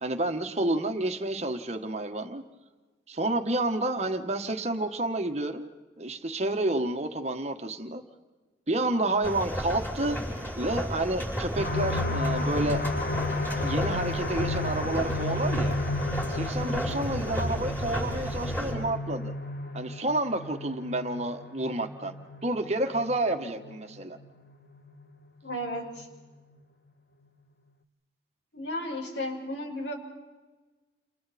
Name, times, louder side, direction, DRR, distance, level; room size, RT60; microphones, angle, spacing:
voice 1, 0.0-2.4 3.1-5.7 6.0-8.0 8.7-10.2 10.6-12.8 13.6-15.8 16.3-19.3 19.7-22.1 22.4-24.2, right 2 dB, 35° right, 6 dB, 1.4 m, -29 dB
sound 1, 9.2-18.7, equal, 10° left, 7.3 m, -33 dB
sound 2, 11.6-25.0 25.5-25.6 26.0-26.1, left 2 dB, 50° left, 1.5 m, -33 dB
voice 2, 16.6-17.0 23.4-23.8 25.4-26.1 28.5-29.9, left 1 dB, 70° left, 1 dB, 5.2 m, -35 dB
30.0 x 29.0 x 4.3 m, 1.3 s
head